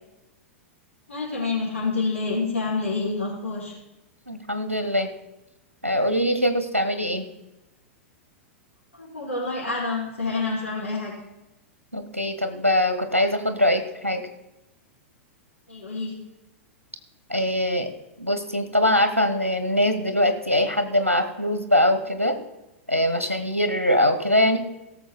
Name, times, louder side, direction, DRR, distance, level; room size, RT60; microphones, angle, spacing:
voice 1, 1.1-3.8 8.9-11.1 15.7-16.1, left 3 dB, 70° left, -10 dB, 4.8 m, -28 dB
voice 2, 4.3-5.1 5.8-7.3 11.9-14.2 17.3-17.9 18.2-22.4 22.9-24.6, left 1 dB, 90° right, 9 dB, 1.2 m, -22 dB
17.5 x 7.1 x 4.1 m, 0.94 s
figure-of-eight pair, 100°, 7 cm